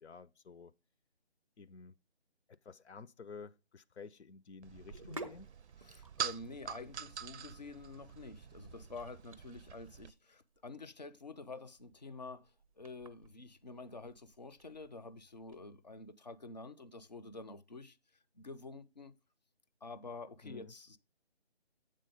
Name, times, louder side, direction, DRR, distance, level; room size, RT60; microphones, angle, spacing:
voice 1, 0.0-0.7 1.6-1.9 2.5-5.5 20.4-20.7, left 4 dB, 85° left, 0.6 m, -52 dB
sound 1, 4.6-10.1, right 7 dB, 85° right, 0.5 m, -45 dB
Sink (filling or washing), 4.7-15.6, right 2 dB, 35° right, 0.5 m, -55 dB
voice 2, 5.8-12.5 12.8-18.0 18.4-19.1 19.8-21.0, left 3 dB, 40° left, 0.4 m, -48 dB
7.6 x 3.7 x 5.0 m
figure-of-eight pair, 160°, 33 cm